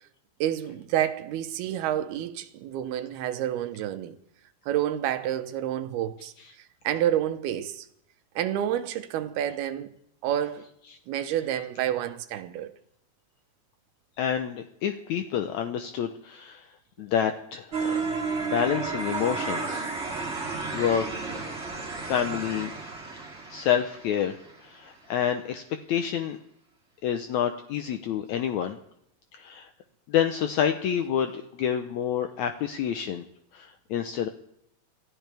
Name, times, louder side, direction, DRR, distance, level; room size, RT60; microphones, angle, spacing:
voice 1, 0.4-4.2 4.7-6.3 6.8-7.9 8.4-9.9 10.2-10.7 11.1-12.7, right 11 dB, 90° right, 3.0 m, -29 dB
voice 2, 14.2-16.7 17.0-18.0 18.4-19.9 20.4-21.1 22.0-22.7 23.5-25.6 25.9-26.4 27.0-28.8 29.3-29.7 30.1-33.2 33.5-34.3, left 9 dB, 80° left, 1.7 m, -28 dB
sound 1, 17.7-24.7, right 4 dB, 20° right, 2.5 m, -32 dB
27.5 x 13.5 x 3.4 m
omnidirectional pair, 4.3 m